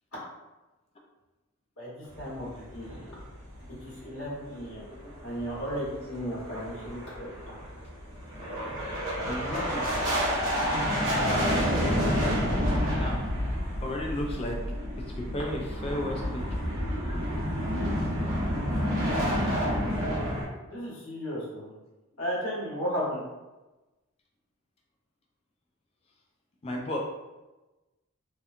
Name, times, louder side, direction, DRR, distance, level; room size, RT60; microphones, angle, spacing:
voice 1, 1.8-3.0 3.8-4.8 5.2-7.3 19.9-20.1 20.7-21.7 22.2-23.2, equal, 70° left, -8 dB, 1.2 m, -34 dB
sound 1, 2.1-3.8 4.1-4.2 4.6-4.7 5.1-20.4, equal, 60° right, 0.8 m, -29 dB
voice 2, 9.2-9.9 12.1-13.2 13.8-14.6 15.1-16.4 26.6-27.0, left 1 dB, 25° left, 0 dB, 0.3 m, -34 dB
2.8 x 2.2 x 2.4 m, 1.1 s
head